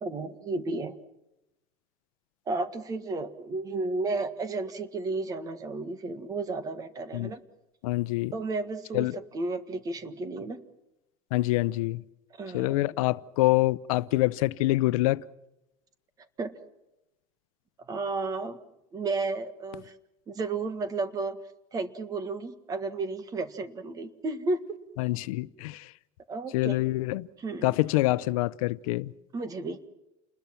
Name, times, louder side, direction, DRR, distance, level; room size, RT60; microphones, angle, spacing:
voice 1, 0.0-0.9 2.5-7.4 8.3-10.6 12.4-12.9 16.4-16.5 17.9-18.6 18.9-19.9 20.3-21.4 21.7-24.6 25.0-25.1 26.3-26.8 27.4-27.8 29.3-29.8, right 3 dB, 20° right, 1.7 m, -33 dB
voice 2, 7.8-8.3 8.9-9.2 11.3-12.0 12.5-15.2 25.0-25.9 26.5-27.3 27.6-29.1, left 18 dB, 85° left, 0.8 m, -26 dB
29.5 x 21.0 x 6.0 m
cardioid pair, 170°, 18 cm